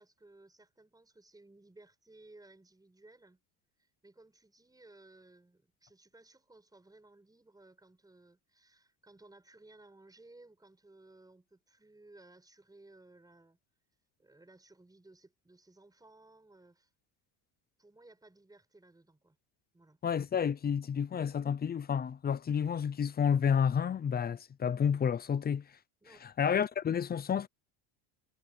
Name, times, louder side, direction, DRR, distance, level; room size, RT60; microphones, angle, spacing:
voice 1, 0.0-3.4 3.8-13.6 14.2-16.9 17.8-19.4 19.7-20.0 26.0-26.3, right 2 dB, 10° right, 5.7 m, -59 dB
voice 2, 20.0-25.7 26.2-27.5, left 7 dB, 20° left, 0.6 m, -30 dB
supercardioid pair, 120°, 47 cm